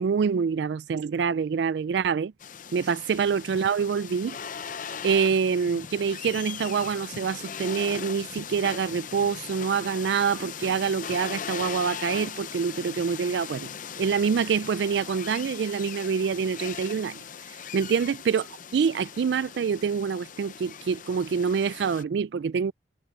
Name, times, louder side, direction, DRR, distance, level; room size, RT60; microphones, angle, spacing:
voice 1, 0.0-2.3 2.7-4.4 5.0-13.7 14.0-17.2 17.5-18.4 18.7-22.7, right 6 dB, 65° right, 0.3 m, -26 dB
windy forest, 2.4-22.0, left 7 dB, 45° left, 0.7 m, -39 dB
head